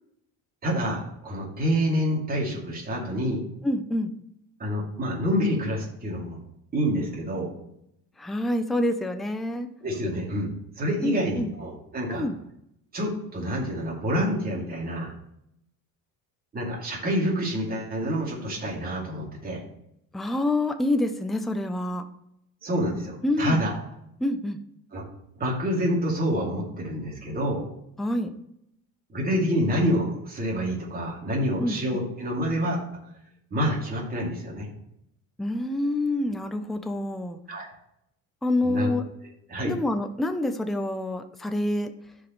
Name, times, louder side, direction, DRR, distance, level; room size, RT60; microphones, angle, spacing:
voice 1, 0.6-3.4 4.6-6.4 6.7-7.5 9.8-10.5 10.8-12.2 12.9-15.1 16.5-19.6 22.6-23.7 24.9-25.0 25.4-27.6 29.1-32.8 33.5-34.7 37.5-37.7 38.6-38.9 39.5-39.7, equal, 25° right, -3 dB, 2.6 m, -27 dB
voice 2, 3.6-4.1 8.2-9.7 11.0-11.5 12.1-12.3 20.1-22.1 23.2-23.6 24.2-24.6 28.0-28.3 31.6-32.0 35.4-37.4 38.4-39.0 39.6-41.9, left 1 dB, ahead, 7 dB, 0.5 m, -27 dB
14.5 x 5.1 x 3.1 m, 0.78 s
cardioid pair, 135°, 37 cm